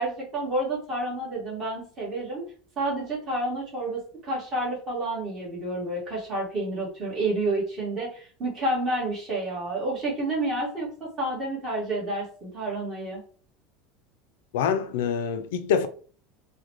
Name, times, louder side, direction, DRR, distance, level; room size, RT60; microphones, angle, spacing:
voice 1, 0.0-2.4 2.8-13.2, right 2 dB, 25° right, 1.7 m, -29 dB
voice 2, 14.5-15.9, left 7 dB, 90° left, 0.4 m, -25 dB
3.7 x 2.2 x 3.0 m
supercardioid pair, 160°, 0 cm